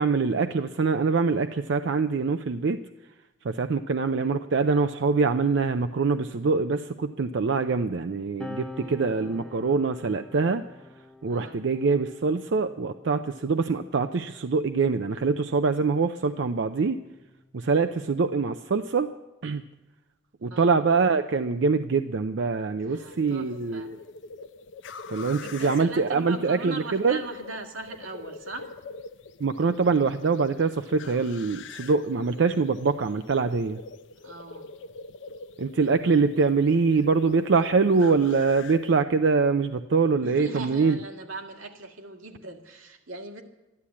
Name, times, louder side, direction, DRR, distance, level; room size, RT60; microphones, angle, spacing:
voice 1, 0.0-2.8 3.4-10.6 11.2-17.0 17.5-19.1 19.4-19.6 20.4-24.0 25.1-27.2 29.4-33.8 35.6-41.0, right 4 dB, 60° right, 9 dB, 0.5 m, -24 dB
sound 1, 8.4-15.3 16.3-18.1, left 2 dB, 5° left, 0.6 m, -46 dB
voice 2, 8.8-9.6 11.3-11.6 20.5-20.8 22.7-23.9 25.4-28.7 34.2-34.7 40.2-43.4, right 3 dB, 90° right, 3 dB, 2.0 m, -40 dB
sound 2, 22.9-39.0, left 3 dB, 65° left, 0.6 m, -44 dB
13.0 x 12.0 x 8.4 m, 1.0 s
head